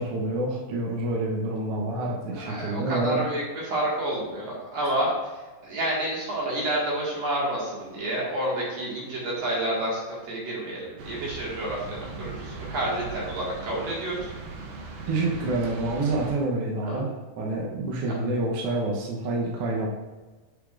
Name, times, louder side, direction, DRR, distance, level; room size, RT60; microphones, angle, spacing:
voice 1, 0.0-3.2 15.1-17.1 17.4-19.9, right 2 dB, 75° right, -2 dB, 1.3 m, -27 dB
voice 2, 2.3-5.1 5.6-14.3 16.9-17.0 18.1-18.2, right 1 dB, 55° right, -5 dB, 2.8 m, -29 dB
sound 1, 11.0-16.3, right 3 dB, 90° right, 1.3 m, -39 dB
7.5 x 6.4 x 2.5 m, 1.2 s
omnidirectional pair, 3.9 m